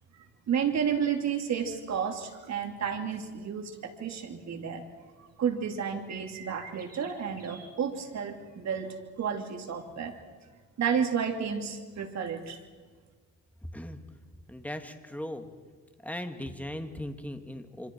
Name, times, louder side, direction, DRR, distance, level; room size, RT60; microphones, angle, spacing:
voice 1, 0.5-4.8 5.2-10.1 10.8-12.6, right 7 dB, 60° right, 4 dB, 2.8 m, -31 dB
sound 1, 2.2-2.4 2.9-3.0 4.1-4.2 4.5-4.6 4.9-5.3 6.1-7.7 8.4-8.6, right 5 dB, 30° right, 4.4 m, -50 dB
voice 2, 14.5-15.5 16.0-17.9, left 1 dB, 5° left, 6 dB, 2.0 m, -38 dB
26.0 x 26.0 x 4.6 m, 1.4 s
cardioid pair, 90°, 30 cm